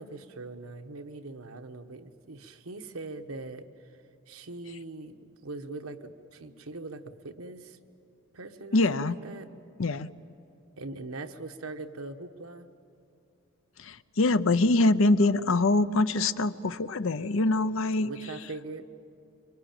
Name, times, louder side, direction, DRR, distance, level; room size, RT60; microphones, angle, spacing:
voice 1, 0.0-3.7 4.3-7.8 8.3-9.5 10.8-12.7 17.9-18.9, right 2 dB, 85° right, 6 dB, 1.2 m, -41 dB
voice 2, 8.7-9.2 9.8-10.1 13.8-18.1, left 2 dB, 65° left, 14 dB, 0.7 m, -24 dB
26.0 x 24.0 x 9.0 m, 2.6 s
head